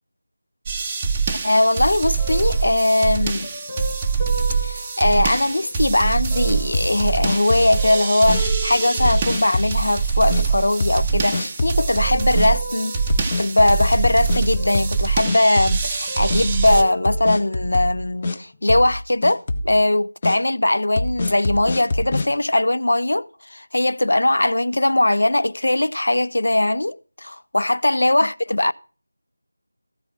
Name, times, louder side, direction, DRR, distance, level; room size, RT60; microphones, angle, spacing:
sound 1, 0.7-16.8, right 5 dB, 15° right, 0.6 m, -24 dB
voice 1, 1.4-3.5 4.6-12.9 13.4-28.7, left 1 dB, 55° left, 0.4 m, -20 dB
sound 2, 2.2-5.8 6.3-9.8 10.5-11.2 11.8-14.1 14.5-15.6 15.8-17.9 18.5-18.6, equal, 10° left, 1.1 m, -37 dB
sound 3, 6.7-7.8 8.3-8.4 9.0-9.8 10.3-10.4 10.8-11.1 11.3-11.9 12.3-12.5 13.1-15.0 15.3-16.0 16.3-16.4 17.0-18.4 18.7-19.0 19.2-19.7 20.2-20.4 21.0-22.3, left 2 dB, 25° left, 0.7 m, -25 dB
14.0 x 4.8 x 6.2 m
figure-of-eight pair, 165°, 0 cm